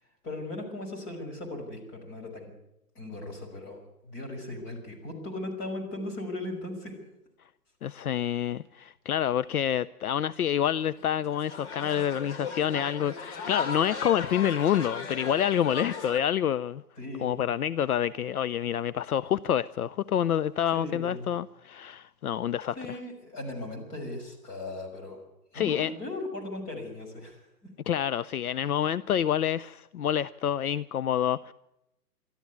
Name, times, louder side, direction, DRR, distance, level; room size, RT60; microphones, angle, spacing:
voice 1, 0.2-2.5 2.9-7.0 17.0-17.4 20.7-21.3 22.8-25.2 25.5-27.5, left 2 dB, 25° left, 5.8 m, -38 dB
voice 2, 7.8-16.8 17.2-23.0 25.5-25.9 27.9-31.5, left 10 dB, 70° left, 0.7 m, -28 dB
sound 1, 11.0-16.2, left 5 dB, 45° left, 2.5 m, -36 dB
23.5 x 13.0 x 9.6 m
hypercardioid pair, 145°, 47 cm